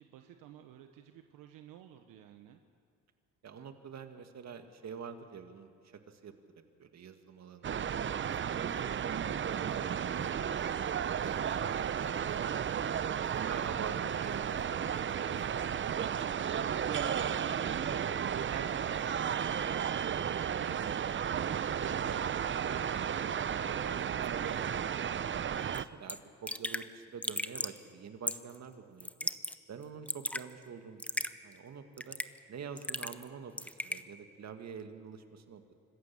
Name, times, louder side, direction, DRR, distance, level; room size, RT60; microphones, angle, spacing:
voice 1, 0.0-2.6 23.2-23.5, right 11 dB, 80° right, 6 dB, 1.2 m, -54 dB
voice 2, 3.4-5.7 6.1-6.5 6.8-7.8 8.2-9.2 9.5-12.8 13.3-16.1 16.4-17.2 17.6-20.2 20.6-21.3 21.8-23.3 23.7-29.3 29.7-32.2 32.5-35.6, right 6 dB, 55° right, 7 dB, 2.0 m, -46 dB
sound 1, 7.6-25.8, right 8 dB, 35° right, 0.7 m, -33 dB
Raindrop / Drip, 25.7-25.8 26.1-26.2 26.5-26.9 27.2-27.8 28.3-28.6 29.0-29.6 29.8-30.4 31.0-31.3 32.0-32.4 32.8-33.3 33.6-34.0, left 1 dB, 5° left, 0.8 m, -36 dB
25.5 x 15.0 x 7.1 m, 2.4 s
supercardioid pair, 70°, 33 cm